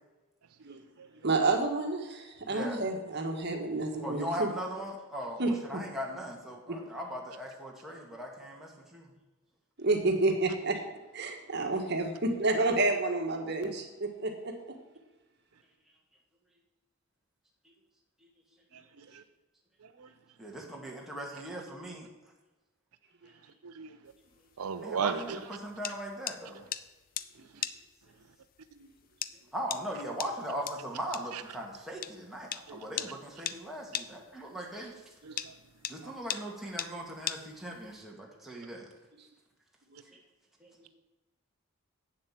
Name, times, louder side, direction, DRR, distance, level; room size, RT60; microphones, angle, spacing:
voice 1, 1.2-4.5 5.4-5.8 6.7-6.8 9.8-10.8 11.1-14.8 28.8-28.9 39.9-40.0, right 2 dB, 50° right, 4 dB, 1.5 m, -30 dB
voice 2, 4.0-9.1 20.4-22.1 24.8-26.7 29.5-35.0 35.9-38.9 40.6-40.7, equal, ahead, -3 dB, 2.0 m, -39 dB
sound 1, 24.1-38.0, left 10 dB, 40° left, 0.4 m, -40 dB
voice 3, 24.6-25.2 32.7-32.8 35.3-35.4, right 6 dB, 80° right, 11 dB, 0.5 m, -32 dB
8.7 x 7.5 x 7.5 m, 1.1 s
head